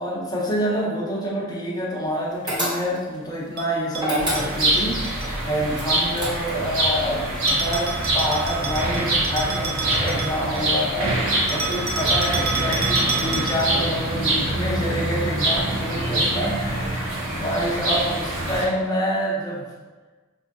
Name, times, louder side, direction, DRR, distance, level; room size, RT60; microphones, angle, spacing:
voice 1, 0.0-19.6, equal, 20° left, -4 dB, 0.6 m, -27 dB
sound 1, 2.5-3.2 4.0-4.9 5.7-6.7, equal, 20° right, 1.0 m, -27 dB
Bell, 3.6-5.3 7.5-10.7 11.5-13.9, right 5 dB, 45° right, 0.4 m, -30 dB
sound 2, 4.2-18.6, right 1 dB, 80° right, 0.8 m, -25 dB
4.0 x 2.6 x 2.6 m, 1.3 s
head